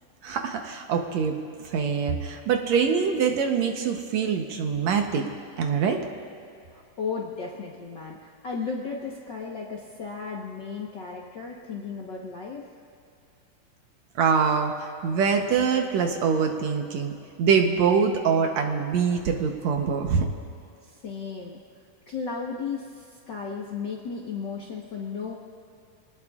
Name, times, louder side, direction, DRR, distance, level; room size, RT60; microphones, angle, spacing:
voice 1, 0.2-5.2 5.6-6.0 14.2-20.3, right 6 dB, 70° right, 4 dB, 2.0 m, -24 dB
voice 2, 6.7-12.7 20.8-21.6 22.1-25.3, left 5 dB, 55° left, -2 dB, 1.2 m, -35 dB
26.5 x 19.0 x 2.4 m, 2.5 s
omnidirectional pair, 3.6 m